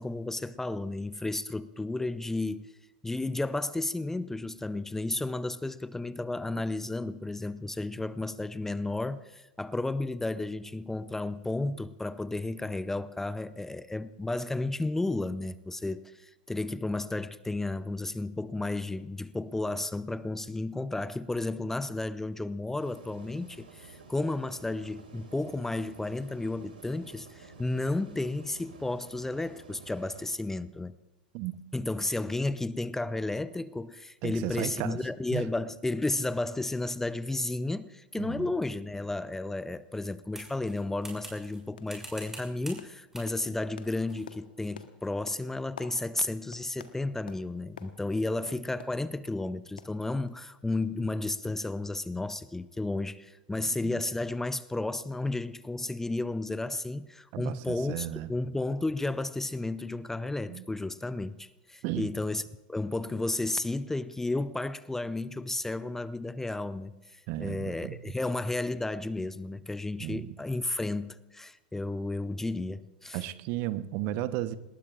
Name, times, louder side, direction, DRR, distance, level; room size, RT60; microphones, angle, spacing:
voice 1, 0.0-2.7 3.0-31.0 31.7-62.4 62.7-73.2, left 2 dB, 10° left, 0.5 m, -33 dB
sound 1, 22.8-30.3, right 4 dB, 85° right, 4.9 m, -51 dB
voice 2, 34.2-35.0 35.3-35.4 38.2-38.5 53.6-54.0 57.3-58.3 60.5-60.7 61.8-62.1 67.3-68.1 70.0-70.3 73.1-74.6, right 14 dB, 50° right, 0.9 m, -34 dB
sound 2, 40.3-41.6 41.9-42.8 43.1-43.3 44.1-44.3, right 2 dB, 10° right, 6.2 m, -45 dB
sound 3, 40.8-40.9 41.2-41.5 41.8-42.0 42.3-49.4 49.8-50.6 50.8-50.9 51.3-51.4, left 6 dB, 80° left, 1.3 m, -51 dB
27.0 x 20.0 x 2.5 m
hypercardioid pair, 90°, 5 cm